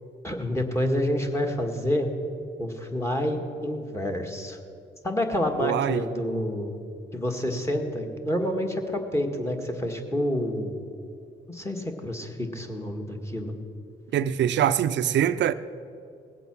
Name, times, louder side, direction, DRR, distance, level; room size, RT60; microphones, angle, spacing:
voice 1, 0.2-2.1 2.6-4.6 5.0-6.8 7.1-10.8 11.5-13.5, left 1 dB, 15° left, 1.7 m, -28 dB
voice 2, 5.6-6.0 14.1-15.5, right 10 dB, 65° right, 0.6 m, -23 dB
19.5 x 7.9 x 6.1 m
cardioid pair, 90°, 20 cm